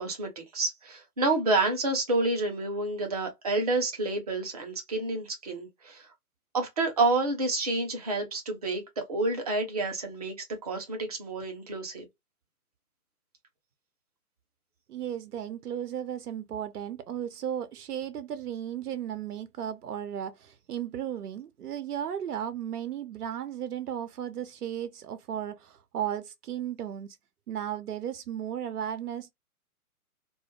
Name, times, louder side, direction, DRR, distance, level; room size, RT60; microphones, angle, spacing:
voice 1, 0.0-6.1 6.5-10.3 10.6-12.0, right 2 dB, 25° right, 0.5 m, -29 dB
voice 2, 14.9-27.2 27.5-29.3, right 10 dB, 80° right, 0.5 m, -35 dB
2.2 x 2.0 x 3.1 m
figure-of-eight pair, 135°, 45 cm